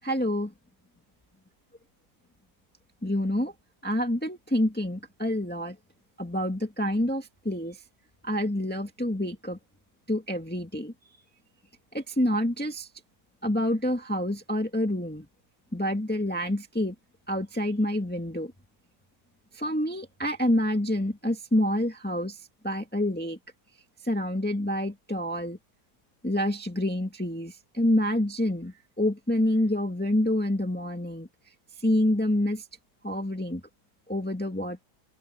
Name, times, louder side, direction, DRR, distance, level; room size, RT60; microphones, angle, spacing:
voice 1, 0.0-0.5 3.0-3.5 3.8-5.8 6.2-7.8 8.2-9.6 10.1-10.9 11.9-12.9 13.4-15.3 15.7-16.9 17.3-18.5 19.5-22.4 22.6-23.4 24.0-25.6 26.2-31.3 31.8-32.6 33.0-33.6 34.1-34.8, left 1 dB, 5° left, 1.8 m, -27 dB
open air
omnidirectional pair, 2.1 m